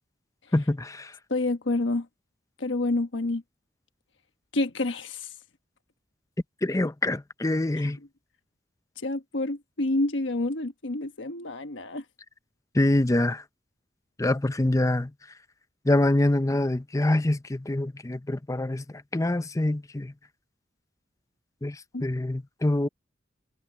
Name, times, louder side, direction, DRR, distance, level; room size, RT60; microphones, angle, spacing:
voice 1, 0.5-1.1 6.6-8.0 12.7-13.4 14.2-15.1 15.8-18.8 19.1-20.1 21.6-22.9, left 1 dB, 15° left, 0.6 m, -25 dB
voice 2, 1.3-2.1 2.6-3.4 4.5-5.3 9.0-12.0 21.9-22.0, left 2 dB, 80° left, 1.3 m, -28 dB
head